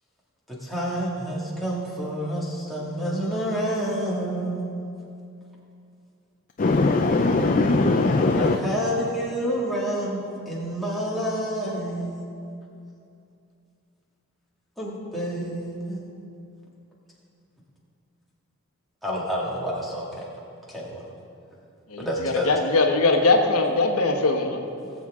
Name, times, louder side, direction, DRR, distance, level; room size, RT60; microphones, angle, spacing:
voice 1, 0.5-4.9 8.2-12.2 14.8-16.0 19.0-20.2 20.7-21.0 22.0-22.5 24.8-24.9, equal, ahead, -7 dB, 2.0 m, -29 dB
voice 2, 6.6-8.6, left 3 dB, 35° left, 4 dB, 0.4 m, -20 dB
voice 3, 21.9-24.6, left 3 dB, 80° left, 2 dB, 1.1 m, -21 dB
19.0 x 7.4 x 3.7 m, 2.5 s
head